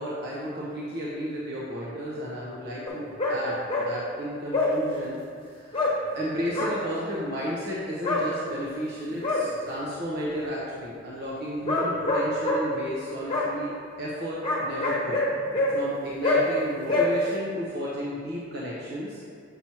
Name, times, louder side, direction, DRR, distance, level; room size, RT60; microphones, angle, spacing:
voice 1, 0.0-5.2 5.4-15.2 15.7-19.2, equal, 55° right, -6 dB, 0.9 m, -33 dB
sound 1, 2.9-3.4 3.7-3.9 4.5-4.7 5.7-5.9 6.5-6.7 8.0-8.2 9.0-9.4 11.7-12.6 13.3-13.5 14.4-15.7 16.2-16.4 16.9-17.1, left 2 dB, 25° left, 1.1 m, -25 dB
7.1 x 6.0 x 3.0 m, 2.3 s
head